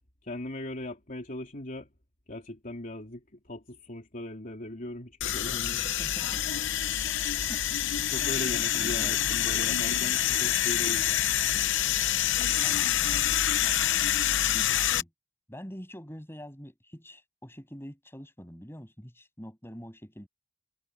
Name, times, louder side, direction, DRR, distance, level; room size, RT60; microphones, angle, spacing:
voice 1, 0.2-1.9 2.3-5.8 8.1-11.2, left 1 dB, 40° left, 3.3 m, -39 dB
sound 1, 5.2-15.0, left 11 dB, 65° left, 0.8 m, -27 dB
voice 2, 6.0-6.4 7.3-7.6 8.2-8.3 8.7-9.2 12.6-13.3 13.6-14.0 14.5-15.1 15.5-20.3, equal, 10° left, 7.3 m, -45 dB
head